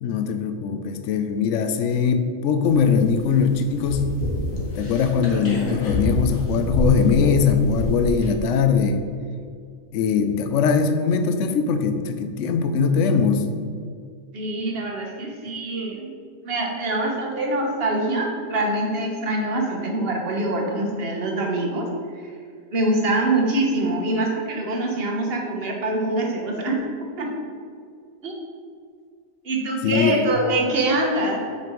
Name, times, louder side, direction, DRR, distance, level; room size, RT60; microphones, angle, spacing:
voice 1, 0.0-4.1 4.8-9.0 9.9-13.5 29.8-30.3, left 6 dB, 70° left, 8 dB, 0.9 m, -21 dB
sound 1, 2.7-8.3, left 1 dB, 90° left, 1.6 m, -27 dB
voice 2, 14.3-16.1 16.4-21.9 22.2-22.3 22.7-26.9 27.2-27.5 28.2-28.4 29.4-31.5, right 2 dB, 50° right, 1 dB, 1.2 m, -24 dB
8.3 x 5.1 x 3.0 m, 2.2 s
omnidirectional pair, 1.3 m